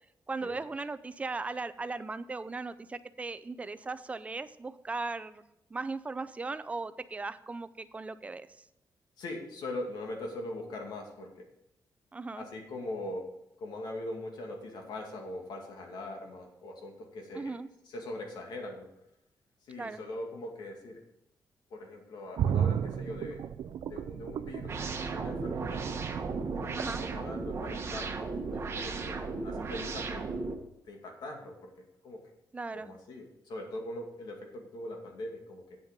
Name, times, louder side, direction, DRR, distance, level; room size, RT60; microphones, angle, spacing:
voice 1, 0.3-5.4 5.7-8.6 12.1-12.5 17.4-17.7 19.8-20.0 26.8-27.0 32.5-32.9, right 3 dB, 20° right, 13 dB, 0.4 m, -38 dB
voice 2, 9.2-11.5 12.3-13.2 13.6-17.5 17.9-18.9 19.6-21.0 21.7-23.4 23.8-24.8 25.1-25.8 26.5-30.3 30.9-31.7 32.0-32.2 32.7-35.8, left 1 dB, 75° left, 2 dB, 2.2 m, -41 dB
sound 1, 22.4-28.2 28.6-28.7, right 8 dB, 75° right, 0.4 m, -34 dB
sound 2, 24.7-30.6, right 4 dB, 35° right, 1.1 m, -36 dB
9.1 x 7.9 x 5.2 m, 0.84 s
wide cardioid pair, 180°, 7 cm